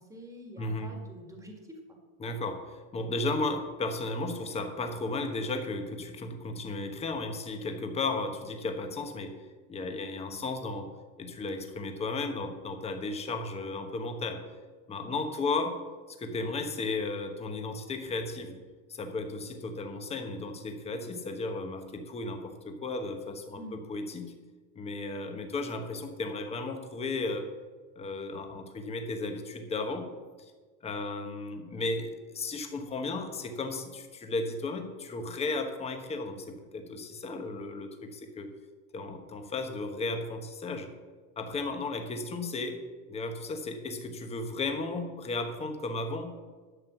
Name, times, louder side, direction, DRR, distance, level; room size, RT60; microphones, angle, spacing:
voice 1, 0.0-2.0 15.0-15.2 23.6-23.8, right 1 dB, 10° right, 2 dB, 1.9 m, -46 dB
voice 2, 0.6-0.9 2.2-9.3 9.7-10.9 11.2-14.4 14.9-15.8 16.2-18.6 18.9-24.3 24.7-27.5 27.9-30.1 30.4-30.5 30.8-38.5 38.9-40.9 41.4-42.8 43.1-46.4, left 3 dB, 15° left, 6 dB, 1.1 m, -34 dB
11.5 x 7.6 x 6.0 m, 1.4 s
supercardioid pair, 160°, 37 cm